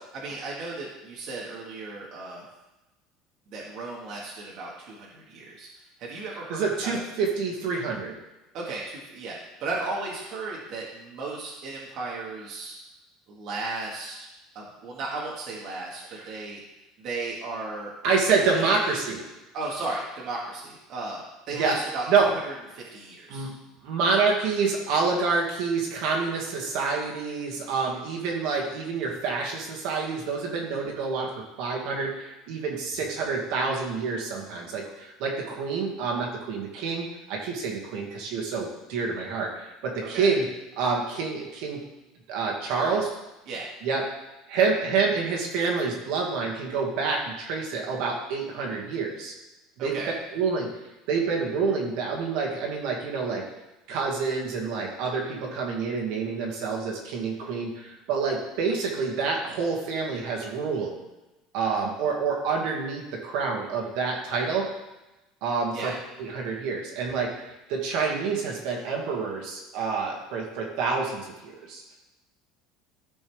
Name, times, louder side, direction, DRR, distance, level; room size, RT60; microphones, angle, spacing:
voice 1, 0.1-2.4 3.5-5.7 6.0-7.0 8.5-12.8 13.3-14.3 14.5-16.6 17.0-17.9 18.3-18.8 19.5-23.5 40.0-40.3 42.7-43.1 43.5-43.7 49.8-50.1 65.7-65.9, right 3 dB, 45° right, -4 dB, 1.6 m, -35 dB
voice 2, 6.5-8.1 16.1-16.3 18.0-19.2 21.5-21.7 22.1-22.3 23.3-23.5 23.8-31.3 31.6-40.5 40.8-41.8 42.3-43.0 43.8-44.0 44.5-49.3 49.8-50.0 50.3-50.7 51.1-53.4 53.9-60.9 61.5-64.7 65.4-65.9 66.2-72.0, right 4 dB, 65° right, -1 dB, 2.0 m, -27 dB
14.0 x 5.4 x 3.4 m, 1.0 s
cardioid pair, 165°, 0 cm